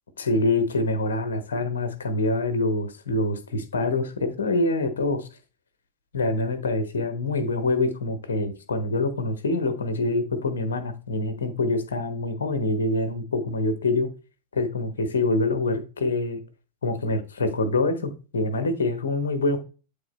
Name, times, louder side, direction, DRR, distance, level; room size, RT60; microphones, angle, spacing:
voice 1, 0.2-5.3 6.1-14.1 14.5-16.4 16.8-19.6, left 2 dB, 70° left, 11 dB, 1.0 m, -25 dB
8.5 x 3.7 x 4.2 m, 0.34 s
figure-of-eight pair, 90°, 0 cm